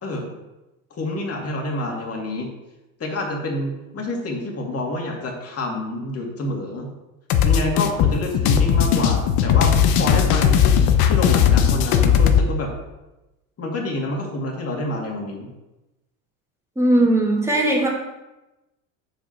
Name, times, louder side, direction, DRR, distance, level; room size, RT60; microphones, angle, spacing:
voice 1, 0.9-2.5 3.0-6.9 7.4-10.7 11.0-12.7 13.6-15.5, left 1 dB, 35° left, 1 dB, 2.3 m, -27 dB
sound 1, 7.3-12.5, left 8 dB, 60° left, 1.0 m, -17 dB
voice 2, 16.8-17.9, right 1 dB, 5° right, -2 dB, 2.3 m, -18 dB
6.7 x 5.1 x 6.0 m, 1.0 s
hypercardioid pair, 80°, 41 cm